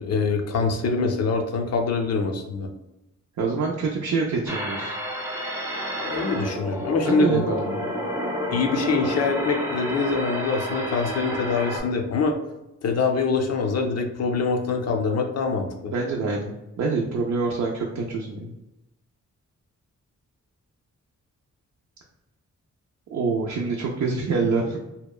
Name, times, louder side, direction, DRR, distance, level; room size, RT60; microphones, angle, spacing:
voice 1, 0.0-2.7 6.0-7.4 8.5-12.4 12.8-15.9, left 4 dB, 60° left, 4 dB, 0.5 m, -24 dB
voice 2, 3.4-4.9 7.0-7.9 15.9-18.5 23.1-24.8, right 4 dB, 70° right, -1 dB, 0.5 m, -26 dB
sound 1, 4.5-11.8, equal, 10° right, 0.6 m, -30 dB
2.8 x 2.1 x 2.3 m, 0.93 s
cardioid pair, 75°, 30 cm